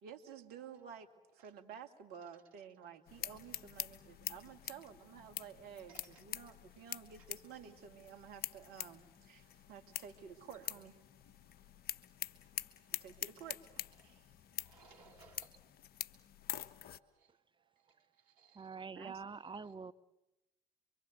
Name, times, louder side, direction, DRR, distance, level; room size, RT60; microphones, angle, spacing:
voice 1, 0.0-11.0 12.9-14.3 14.7-14.8 18.9-19.2, right 7 dB, 60° right, 5 dB, 2.5 m, -52 dB
sound 1, 3.1-17.0, left 11 dB, 60° left, 1.2 m, -46 dB
voice 2, 5.9-6.2 12.9-13.2 14.0-14.2 14.6-15.6 17.1-17.3 18.2-18.9 19.6-19.7, right 5 dB, 80° right, 3 dB, 2.2 m, -63 dB
voice 3, 18.6-19.9, right 5 dB, 25° right, 13 dB, 1.0 m, -45 dB
26.0 x 24.5 x 8.0 m, 0.94 s
hypercardioid pair, 50°, 18 cm